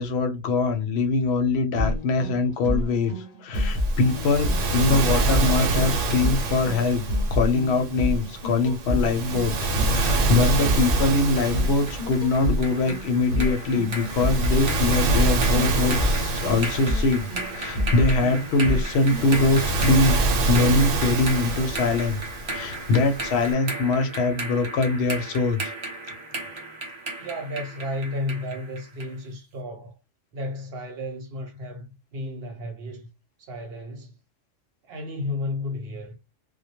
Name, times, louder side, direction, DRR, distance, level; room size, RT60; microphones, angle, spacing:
voice 1, 0.0-7.0 7.3-17.3 17.5-22.2 22.5-25.7, left 3 dB, 65° left, 0.8 m, -23 dB
sound 1, 1.8-19.4, left 1 dB, 40° left, 0.6 m, -29 dB
Waves surf, 3.6-23.5, right 2 dB, 85° right, 1.0 m, -27 dB
sound 2, 11.4-29.2, right 2 dB, 35° right, 0.5 m, -36 dB
voice 2, 27.2-29.9 30.3-33.1 33.4-34.1 34.8-36.2, left 2 dB, 60° right, 0.9 m, -33 dB
2.2 x 2.1 x 2.8 m
omnidirectional pair, 1.3 m